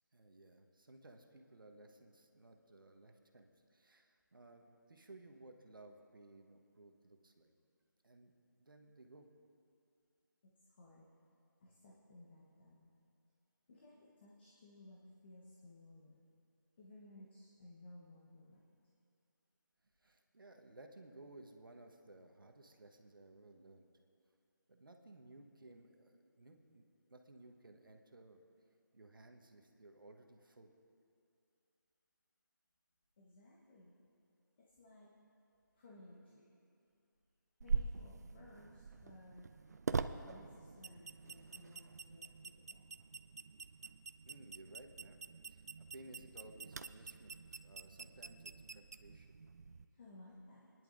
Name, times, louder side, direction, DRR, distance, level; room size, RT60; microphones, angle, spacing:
voice 1, 0.1-7.5 8.0-8.3 8.6-9.3 20.0-23.9 24.7-26.8 27.1-28.4 28.9-30.7 44.2-45.2 45.5-45.6 45.9-49.4, right 2 dB, 85° right, 3 dB, 1.2 m, -58 dB
voice 2, 10.4-11.1 11.6-12.9 13.7-16.2 16.8-18.6 33.2-33.9 34.6-35.1 35.7-36.5 37.6-39.5 40.3-43.0 49.9-50.7, left 1 dB, 30° left, -4 dB, 1.2 m, -59 dB
sound 1, 37.6-49.8, right 5 dB, 50° right, 0.4 m, -44 dB
25.5 x 10.5 x 2.6 m, 2.5 s
figure-of-eight pair, 165°, 11 cm